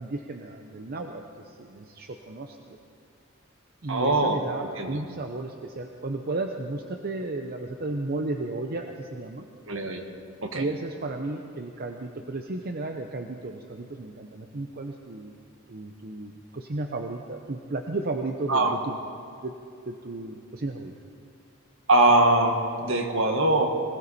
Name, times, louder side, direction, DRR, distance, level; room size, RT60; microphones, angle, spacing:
voice 1, 0.0-2.8 3.8-9.5 10.5-15.4 15.7-19.0 19.4-19.5 19.9-20.9, right 2 dB, 45° right, 4 dB, 0.7 m, -34 dB
voice 2, 3.9-4.4 4.8-5.0 9.7-10.0 10.4-10.6 18.5-18.7 21.9-23.7, right 2 dB, 65° right, 4 dB, 1.6 m, -22 dB
20.5 x 16.5 x 4.2 m, 2.6 s
head